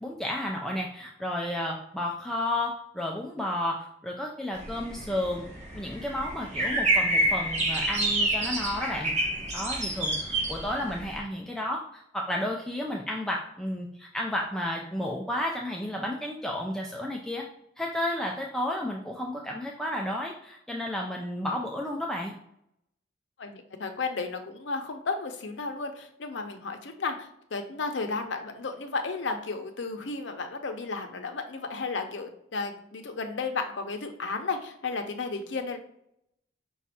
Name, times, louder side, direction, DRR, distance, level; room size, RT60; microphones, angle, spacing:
voice 1, 0.0-5.4 5.7-9.1 9.5-17.4 17.8-22.3, left 1 dB, 5° left, -1 dB, 0.3 m, -32 dB
sound 1, 4.5-11.2, right 1 dB, 40° right, 0.8 m, -28 dB
voice 2, 23.4-35.8, left 4 dB, 70° left, 5 dB, 0.6 m, -33 dB
5.2 x 2.4 x 4.1 m, 0.75 s
head